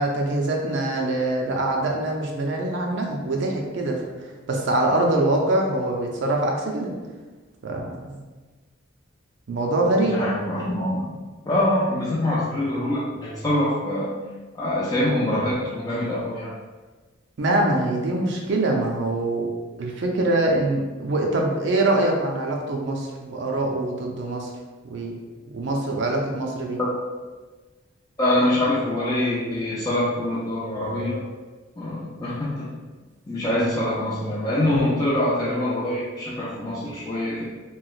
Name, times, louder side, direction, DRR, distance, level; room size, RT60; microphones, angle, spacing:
voice 1, 0.0-4.0 4.5-6.9 7.6-8.2 9.5-10.2 17.4-19.5 19.8-24.5 24.9-25.2 25.5-26.8, right 2 dB, 60° right, 0 dB, 0.5 m, -24 dB
voice 2, 9.9-14.2 14.5-16.5 26.7-26.9 28.2-31.2 31.8-32.7 33.3-37.4, left 1 dB, 20° left, -8 dB, 0.4 m, -24 dB
3.1 x 2.9 x 2.3 m, 1.3 s
head